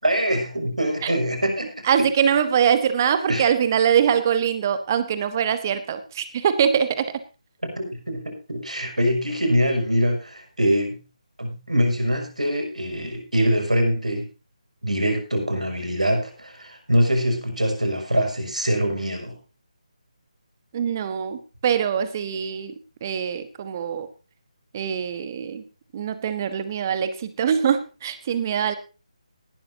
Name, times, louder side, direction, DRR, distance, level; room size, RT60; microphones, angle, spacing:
voice 1, 0.0-1.7 3.3-3.4 7.8-11.0 11.4-14.3 14.8-19.4, equal, 75° right, 4 dB, 6.0 m, -23 dB
voice 2, 1.8-7.2 20.7-24.1 24.7-25.6 25.9-28.7, right 8 dB, 25° right, 12 dB, 1.3 m, -23 dB
18.5 x 12.5 x 2.8 m, 0.32 s
figure-of-eight pair, 150°, 4 cm